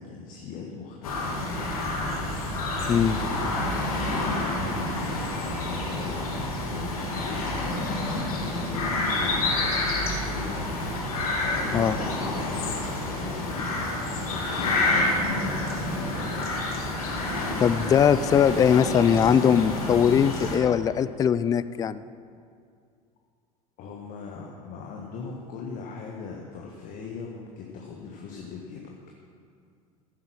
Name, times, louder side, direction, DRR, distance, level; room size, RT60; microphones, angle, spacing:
voice 1, 0.0-1.3 4.0-4.9 5.4-7.7 8.3-10.7 11.5-17.3 23.8-28.9, left 5 dB, 45° left, 0 dB, 1.5 m, -39 dB
sound 1, 1.0-20.6, left 2 dB, 70° left, 1.9 m, -28 dB
voice 2, 2.9-3.2 11.7-12.0 17.6-22.0, left 8 dB, 20° left, 15 dB, 0.4 m, -21 dB
14.5 x 8.2 x 6.1 m, 2.3 s
figure-of-eight pair, 70°, 19 cm